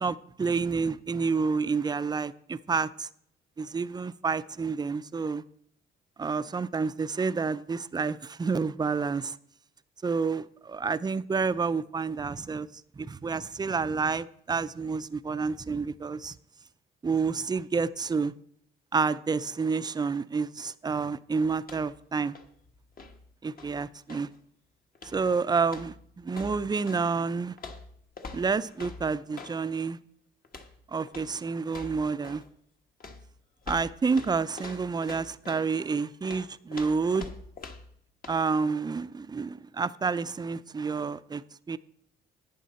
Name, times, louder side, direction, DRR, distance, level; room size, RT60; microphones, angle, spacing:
voice 1, 0.0-3.1 3.6-5.4 6.2-9.4 10.0-12.7 13.0-16.4 17.0-18.3 18.9-22.4 23.4-24.3 25.0-27.6 28.3-30.0 30.9-32.4 33.7-37.3 38.3-41.8, right 5 dB, 20° right, 15 dB, 0.4 m, -29 dB
sound 1, 21.6-22.0 22.3-24.4 24.9-25.3 25.7-27.1 27.6-29.6 30.4-30.8 31.1-31.4 31.7-32.5 33.0-35.7 36.2-38.0 38.2-38.4, left 3 dB, 45° left, 1.3 m, -45 dB
11.5 x 8.8 x 4.2 m, 0.66 s
cardioid pair, 90°, 20 cm